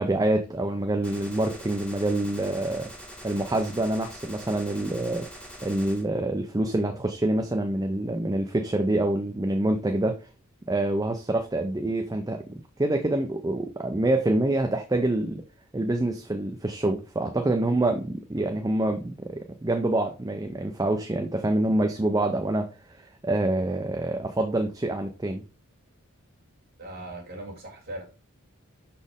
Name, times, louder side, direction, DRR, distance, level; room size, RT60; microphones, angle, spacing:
voice 1, 0.0-2.9 3.2-5.3 5.6-10.2 10.7-12.4 12.8-15.4 15.7-25.4, right 1 dB, 15° right, 0.4 m, -26 dB
Gunshot gunfire, 1.0-6.0, equal, 5° left, 1.6 m, -44 dB
voice 2, 26.8-28.0, right 1 dB, 45° right, 2.2 m, -39 dB
6.2 x 4.2 x 3.5 m
head